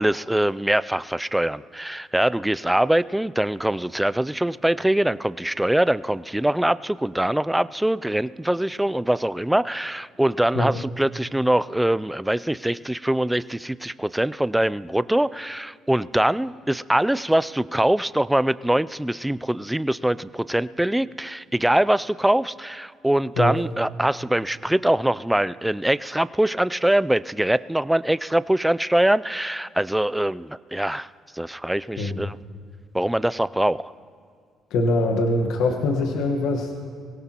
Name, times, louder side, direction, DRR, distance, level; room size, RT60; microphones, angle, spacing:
voice 1, 0.0-31.1 31.3-32.4 32.9-33.9, right 1 dB, 5° right, 16 dB, 0.4 m, -23 dB
voice 2, 32.0-32.3 34.7-36.7, left 2 dB, 80° left, 2 dB, 1.3 m, -23 dB
23.0 x 17.5 x 3.0 m, 2.1 s
supercardioid pair, 70°, 0 cm